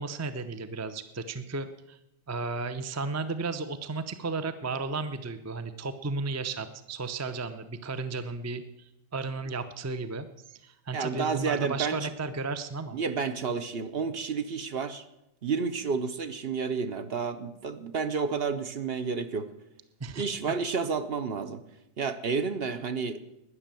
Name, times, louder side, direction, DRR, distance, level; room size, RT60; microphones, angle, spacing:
voice 1, 0.0-2.0 2.3-13.0 20.0-20.2, right 3 dB, 20° right, 11 dB, 0.5 m, -34 dB
voice 2, 10.9-12.1 12.9-15.0 15.4-19.5 20.2-21.6 22.0-23.2, right 5 dB, 50° right, 10 dB, 0.9 m, -30 dB
12.5 x 9.9 x 7.6 m, 0.88 s
omnidirectional pair, 1.4 m